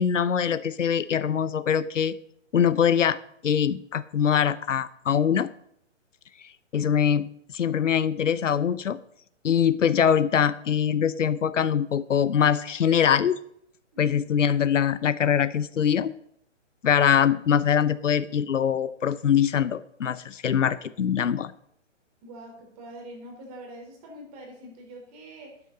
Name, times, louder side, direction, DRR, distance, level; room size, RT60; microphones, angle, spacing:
voice 1, 0.0-2.1 2.5-3.2 3.4-5.5 6.7-9.0 9.4-13.4 14.0-16.1 16.8-21.5, left 8 dB, 80° left, 16 dB, 0.8 m, -23 dB
voice 2, 22.2-25.6, right 1 dB, 30° right, 1 dB, 4.0 m, -44 dB
12.0 x 8.7 x 3.9 m, 0.68 s
hypercardioid pair, 145°, 37 cm